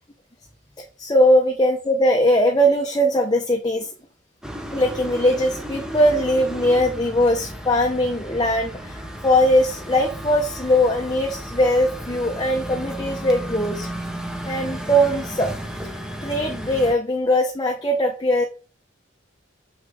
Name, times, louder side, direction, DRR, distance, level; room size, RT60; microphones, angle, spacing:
voice 1, 0.8-3.9 4.7-13.9 14.4-15.5 16.2-18.4, equal, 20° left, 1 dB, 0.9 m, -20 dB
sound 1, 4.4-16.9, equal, 5° right, 0.9 m, -34 dB
6.6 x 6.2 x 3.6 m, 0.34 s
head